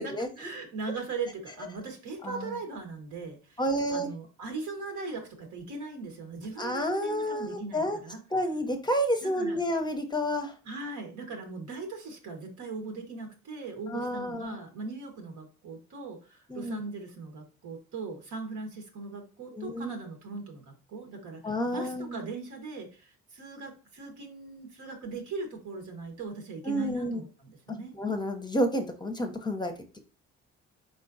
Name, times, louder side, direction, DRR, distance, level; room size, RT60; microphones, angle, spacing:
voice 1, 0.0-3.6 3.9-8.2 9.2-9.6 10.6-27.9, right 3 dB, 80° right, 4 dB, 1.3 m, -39 dB
voice 2, 2.2-2.6 3.6-4.1 6.6-8.0 8.3-10.5 13.9-14.6 16.5-16.8 19.5-19.9 21.4-22.2 26.7-27.2 27.7-30.0, equal, 15° left, 5 dB, 0.6 m, -30 dB
4.1 x 3.8 x 2.5 m, 0.34 s
cardioid pair, 90°, 30 cm